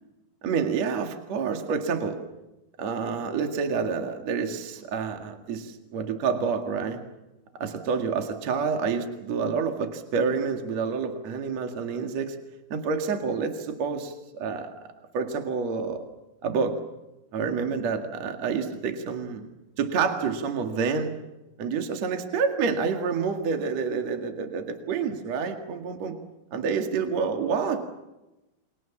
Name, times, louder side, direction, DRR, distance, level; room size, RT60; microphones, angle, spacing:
voice 1, 0.4-2.2 2.8-7.0 7.6-12.4 12.7-14.7 15.1-16.0 16.4-16.7 17.3-19.5 19.8-21.1 21.6-26.2 26.5-27.8, right 5 dB, 50° right, 4 dB, 3.0 m, -28 dB
29.5 x 23.5 x 7.2 m, 1.0 s
omnidirectional pair, 4.3 m